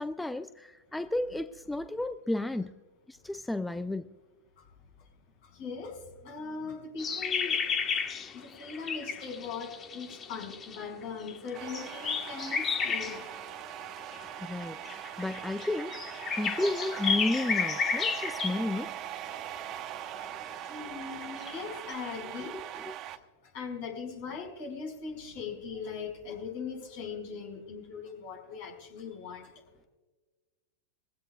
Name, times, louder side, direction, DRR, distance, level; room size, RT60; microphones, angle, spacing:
voice 1, 0.0-2.7 3.1-4.2 14.4-14.8 15.2-19.0 22.4-23.0, left 2 dB, 5° left, 0.4 m, -33 dB
voice 2, 5.5-6.0 6.2-7.6 8.3-13.2 18.7-18.9 19.3-19.4 19.7-19.8 20.2-20.3 20.6-22.9 23.5-29.5, left 5 dB, 55° left, 5.2 m, -40 dB
sound 1, 7.0-13.4 14.0-14.3 14.6-18.7 19.0-19.1 19.4-19.8 20.2-20.4 20.9-21.9, left 6 dB, 25° left, 1.3 m, -33 dB
sound 2, 11.5-23.2, right 12 dB, 40° right, 0.8 m, -41 dB
21.5 x 16.0 x 2.3 m
hypercardioid pair, 105°, 0 cm